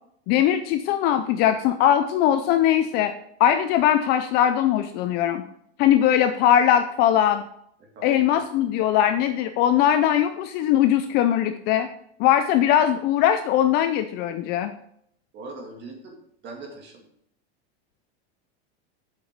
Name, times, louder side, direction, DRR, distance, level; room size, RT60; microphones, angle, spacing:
voice 1, 0.3-3.1 3.4-5.4 5.8-7.4 8.0-11.9 12.2-14.7, left 10 dB, 30° left, 9 dB, 0.4 m, -20 dB
voice 2, 8.0-8.4 15.3-16.2 16.4-17.0, right 3 dB, 30° right, 2 dB, 2.3 m, -40 dB
7.9 x 7.1 x 5.2 m, 0.71 s
supercardioid pair, 155°, 33 cm